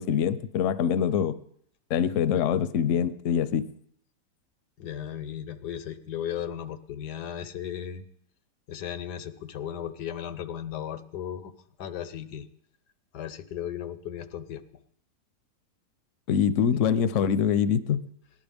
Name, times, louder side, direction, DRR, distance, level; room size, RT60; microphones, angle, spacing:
voice 1, 0.0-1.4 1.9-3.7 16.3-18.0, left 8 dB, 60° left, 14 dB, 0.9 m, -24 dB
voice 2, 4.8-8.0 8.7-11.5 11.8-12.5 13.1-14.6, left 10 dB, 85° left, 11 dB, 1.5 m, -36 dB
18.0 x 11.0 x 3.5 m, 0.67 s
omnidirectional pair, 1.7 m